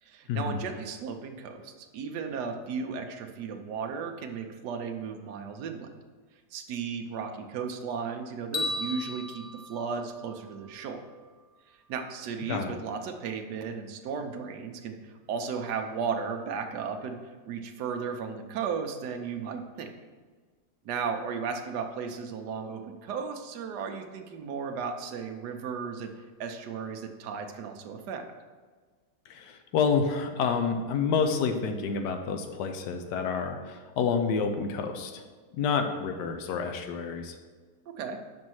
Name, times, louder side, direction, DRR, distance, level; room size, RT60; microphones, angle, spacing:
voice 1, 0.0-5.9 6.5-11.0 11.9-17.2 17.5-19.9 20.8-26.1 26.4-28.2 38.0-38.2, right 6 dB, 75° right, 4 dB, 1.3 m, -35 dB
sound 1, 8.5-10.8, left 2 dB, 35° left, 0.6 m, -36 dB
voice 2, 29.3-35.2 35.5-37.4, left 5 dB, 80° left, 6 dB, 1.3 m, -28 dB
5.4 x 5.2 x 6.2 m, 1.4 s
omnidirectional pair, 1.8 m